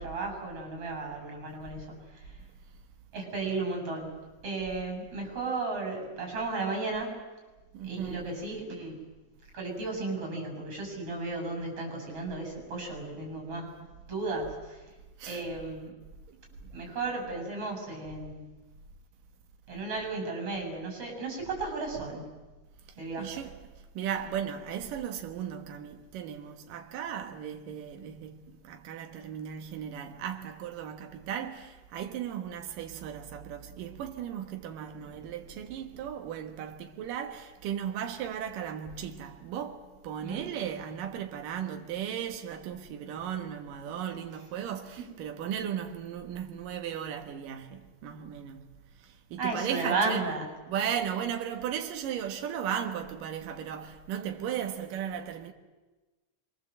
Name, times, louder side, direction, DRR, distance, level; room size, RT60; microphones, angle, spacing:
voice 1, 0.0-2.3 3.1-4.2 4.4-7.1 7.8-9.0 9.5-13.7 14.1-14.8 15.3-15.9 16.7-18.5 19.7-22.3 23.0-23.3 40.2-40.4 45.0-45.1 49.4-50.5, right 3 dB, 45° right, 8.9 m, -34 dB
voice 2, 7.7-8.2 15.2-15.5 16.3-16.4 23.2-23.6 23.9-48.7 49.0-50.3 50.7-55.5, right 9 dB, 85° right, 3.1 m, -36 dB
26.5 x 24.5 x 7.8 m
omnidirectional pair, 3.8 m